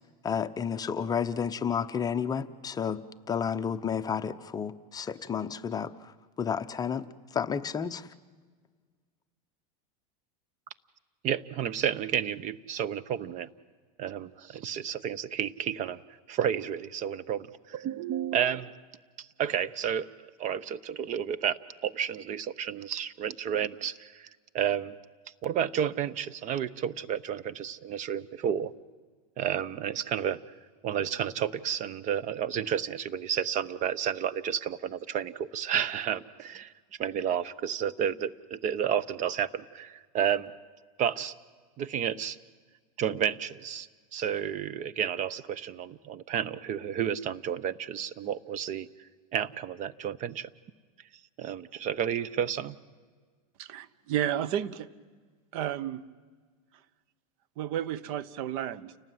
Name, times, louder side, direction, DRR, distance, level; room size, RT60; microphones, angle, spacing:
voice 1, 0.2-3.0 3.3-6.1 6.4-8.1, left 7 dB, 20° left, 9 dB, 0.9 m, -31 dB
voice 2, 11.2-13.5 14.0-16.0 16.3-18.7 19.2-20.1 20.4-24.3 24.5-24.9 25.4-28.7 29.4-30.4 30.8-36.7 37.0-40.5 41.0-41.3 41.8-42.4 43.0-48.9 49.3-50.5 51.4-52.7, right 9 dB, 40° right, 17 dB, 0.9 m, -31 dB
voice 3, 53.6-54.9 55.5-56.0 57.6-59.0, right 11 dB, 60° right, 17 dB, 1.1 m, -32 dB
29.5 x 18.5 x 9.4 m, 1.5 s
supercardioid pair, 130°, 19 cm